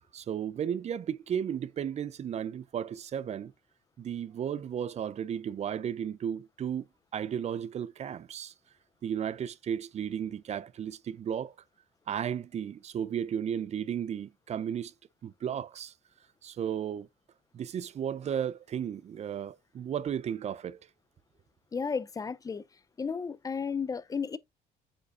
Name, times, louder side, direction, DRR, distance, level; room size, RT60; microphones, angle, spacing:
voice 1, 0.1-3.5 4.0-6.8 7.1-8.5 9.0-11.5 12.1-14.9 15.2-15.9 16.4-17.1 17.5-20.8, right 8 dB, 40° right, 0.5 m, -34 dB
voice 2, 21.7-22.6 23.0-24.4, left 5 dB, 20° left, 0.5 m, -33 dB
8.4 x 5.0 x 2.5 m
cardioid pair, 110°, 17 cm